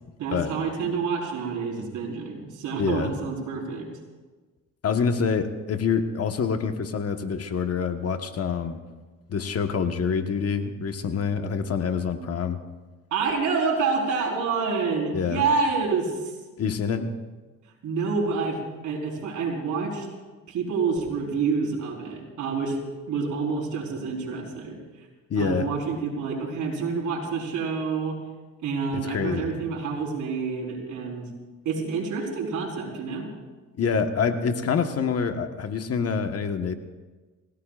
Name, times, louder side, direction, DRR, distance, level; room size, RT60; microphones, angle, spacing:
voice 1, 0.2-3.9 13.1-16.3 17.8-20.1 20.5-22.8 23.1-24.8 25.4-28.2 28.6-31.3 31.6-33.3, right 5 dB, 80° right, -1 dB, 4.8 m, -28 dB
voice 2, 2.8-3.1 4.8-8.8 9.3-12.6 15.1-15.4 16.6-17.1 25.3-25.7 28.9-29.5 33.8-36.7, left 6 dB, 55° left, 6 dB, 1.4 m, -26 dB
29.5 x 17.0 x 2.5 m, 1.3 s
cardioid pair, 90°, 30 cm